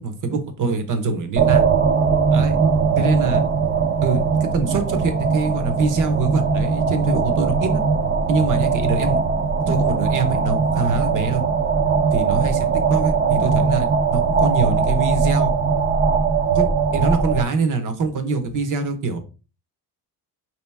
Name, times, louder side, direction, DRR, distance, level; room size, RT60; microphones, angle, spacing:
voice 1, 0.0-1.6 2.3-2.6 3.0-3.4 4.0-7.8 8.3-9.2 9.7-11.4 12.1-15.5 16.5-19.2, right 4 dB, 55° right, 7 dB, 1.1 m, -24 dB
sound 1, 1.4-17.4, right 5 dB, 35° right, 0.7 m, -20 dB
5.1 x 3.0 x 3.4 m, 0.33 s
cardioid pair, 115°, 38 cm